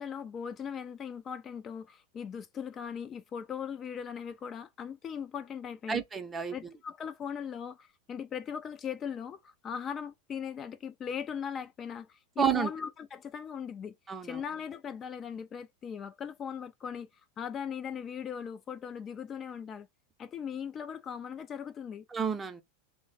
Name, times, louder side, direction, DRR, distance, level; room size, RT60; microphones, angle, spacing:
voice 1, 0.0-6.0 6.5-14.0 14.2-17.1 17.4-19.9 20.2-22.1, left 7 dB, 30° left, 0.3 m, -39 dB
voice 2, 5.9-6.6 12.4-12.7 14.1-14.4 22.1-22.6, right 7 dB, 20° right, 0.5 m, -30 dB
3.1 x 2.0 x 3.9 m
hypercardioid pair, 90°, 0 cm